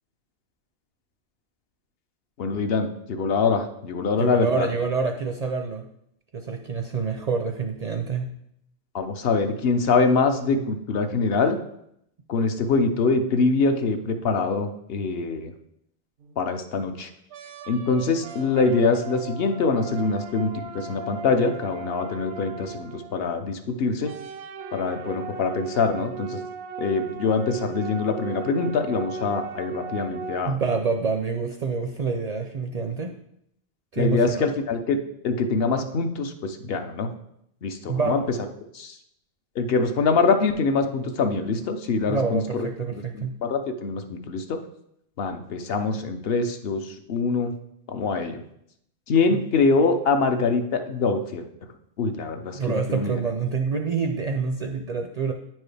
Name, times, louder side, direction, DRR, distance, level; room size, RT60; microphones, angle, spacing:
voice 1, 2.4-4.7 8.9-11.6 12.3-15.5 16.4-17.1 17.7-24.1 24.7-26.4 26.8-30.5 34.0-35.0 35.2-37.1 37.6-38.2 38.7-38.9 39.6-44.6 45.2-47.5 47.9-48.4 49.1-51.4 52.0-53.2, left 4 dB, 65° left, 6 dB, 0.8 m, -24 dB
voice 2, 4.2-5.8 6.3-8.3 30.5-33.1 33.9-34.5 37.9-38.2 42.1-43.4 49.3-49.4 52.5-55.3, right 5 dB, 55° right, 4 dB, 0.5 m, -27 dB
Minimoog lead solo, 16.2-16.6 17.3-23.6 24.0-30.4, right 5 dB, 85° right, 0.9 m, -37 dB
9.3 x 4.6 x 3.3 m, 0.74 s
omnidirectional pair, 1.1 m